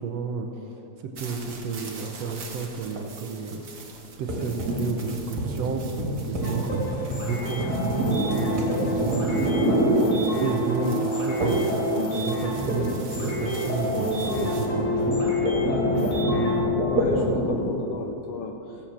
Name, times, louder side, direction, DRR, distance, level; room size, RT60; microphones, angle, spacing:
voice 1, 0.0-3.6 4.2-15.1, right 5 dB, 70° right, 4 dB, 1.8 m, -32 dB
sound 1, 1.1-14.7, right 4 dB, 55° right, 0.9 m, -45 dB
sound 2, 4.3-10.6 11.4-11.8 12.0-17.7, right 1 dB, 35° right, 2.3 m, -27 dB
sound 3, 6.4-16.6, equal, 50° left, 4.1 m, -28 dB
voice 2, 16.9-18.9, left 6 dB, 75° left, 4 dB, 1.4 m, -35 dB
15.5 x 7.5 x 7.3 m, 2.9 s
omnidirectional pair, 3.4 m